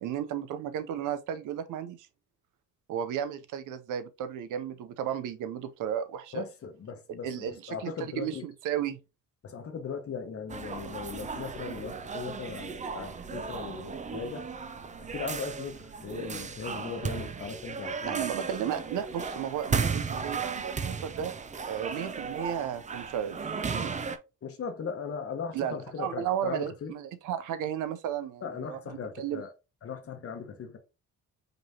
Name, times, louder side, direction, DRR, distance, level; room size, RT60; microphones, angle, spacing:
voice 1, 0.0-2.1 2.9-6.4 7.2-9.0 18.0-21.3 21.6-23.4 23.7-24.0 25.5-29.4, right 9 dB, 85° right, 0.6 m, -34 dB
voice 2, 6.3-8.5 9.4-14.4 15.0-18.2 24.4-26.9 28.4-29.5 29.8-30.8, left 6 dB, 50° left, 1.1 m, -38 dB
sound 1, 10.5-24.2, right 5 dB, 25° right, 0.5 m, -35 dB
5.2 x 3.0 x 2.7 m
cardioid pair, 90°, 30 cm